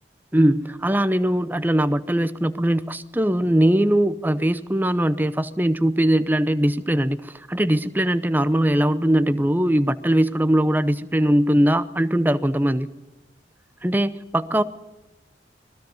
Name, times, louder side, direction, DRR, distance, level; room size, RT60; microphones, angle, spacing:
voice 1, 0.3-12.9 13.8-14.6, right 1 dB, 10° right, 12 dB, 0.7 m, -21 dB
26.5 x 20.0 x 5.4 m, 1.1 s
head